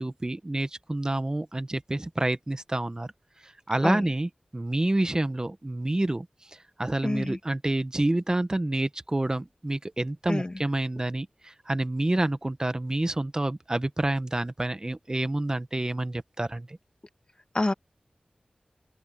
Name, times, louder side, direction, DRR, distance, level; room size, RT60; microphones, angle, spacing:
voice 1, 0.0-3.1 3.4-6.3 6.8-16.8, right 1 dB, 30° right, 1.1 m, -28 dB
voice 2, 7.0-7.4 10.3-10.6 17.5-17.7, left 2 dB, 35° left, 1.3 m, -27 dB
open air
wide cardioid pair, 70°, 3 cm